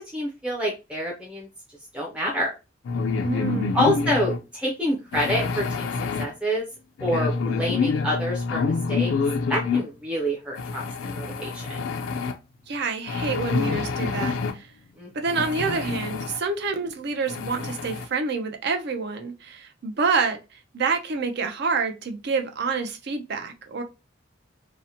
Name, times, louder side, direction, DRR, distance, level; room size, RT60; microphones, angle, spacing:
voice 1, 0.1-1.5 1.9-2.5 3.7-5.9 6.2-6.7 7.0-9.1 9.5-11.8 15.0-15.1, equal, 5° right, 0.5 m, -27 dB
sound 1, 2.8-4.4 5.1-6.3 7.0-9.8 10.6-12.3 13.1-14.6 15.3-16.4 16.8-16.9 17.3-18.1, left 4 dB, 80° left, 0.4 m, -27 dB
voice 2, 3.2-3.8 12.7-14.7 15.1-23.8, right 4 dB, 60° right, 0.5 m, -27 dB
2.7 x 2.0 x 2.7 m
head